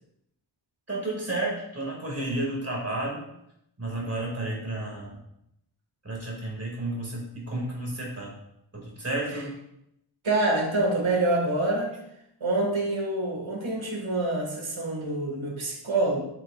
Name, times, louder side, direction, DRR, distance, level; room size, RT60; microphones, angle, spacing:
voice 1, 0.9-3.2 3.8-5.2 6.0-8.3 8.7-9.5, right 2 dB, 30° right, -3 dB, 2.4 m, -31 dB
voice 2, 10.2-12.0 12.4-16.2, right 2 dB, 80° right, -1 dB, 2.1 m, -26 dB
7.7 x 6.8 x 2.5 m, 0.80 s
wide cardioid pair, 100°, 47 cm